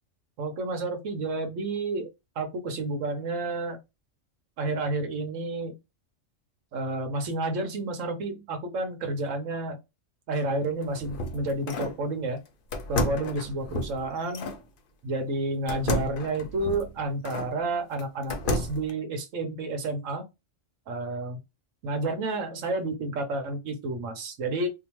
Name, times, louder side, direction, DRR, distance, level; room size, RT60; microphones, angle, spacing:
voice 1, 0.4-2.1 2.4-3.8 4.6-5.8 6.7-9.8 10.3-12.4 12.9-14.5 15.0-20.2 20.9-21.4 21.8-24.7, right 2 dB, 80° right, 1.1 m, -30 dB
sound 1, 10.6-12.0 12.7-14.6 15.7-17.5 18.0-18.9, left 1 dB, 55° left, 0.6 m, -31 dB
2.8 x 2.1 x 2.9 m
omnidirectional pair, 1.3 m